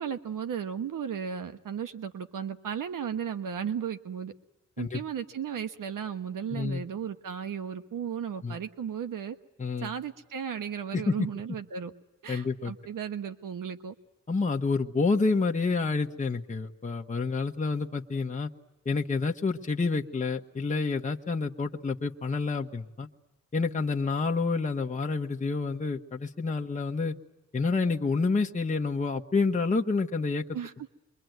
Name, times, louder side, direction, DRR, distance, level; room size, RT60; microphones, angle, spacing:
voice 1, 0.0-4.3 4.8-9.4 9.8-11.9 12.2-13.9 30.5-30.9, right 8 dB, 90° right, 9 dB, 1.2 m, -35 dB
voice 2, 6.5-6.8 8.4-8.6 9.6-9.9 10.9-11.2 12.3-12.7 14.3-18.5 18.8-23.1 23.5-27.1 27.5-30.4, left 4 dB, 25° left, 1 dB, 1.2 m, -28 dB
27.5 x 23.5 x 9.3 m, 0.96 s
wide cardioid pair, 130°, 31 cm